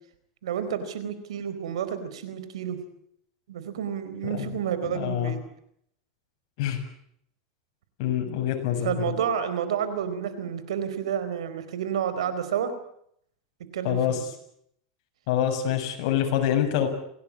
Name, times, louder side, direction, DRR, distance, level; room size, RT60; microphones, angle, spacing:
voice 1, 0.4-2.8 3.5-5.4 8.8-12.7 13.6-14.2, right 8 dB, 90° right, 12 dB, 4.3 m, -30 dB
voice 2, 4.8-5.3 6.6-6.8 8.0-9.1 13.8-14.2 15.3-16.9, left 10 dB, 60° left, 4 dB, 7.1 m, -26 dB
27.0 x 18.0 x 8.7 m, 0.71 s
supercardioid pair, 130°, 3 cm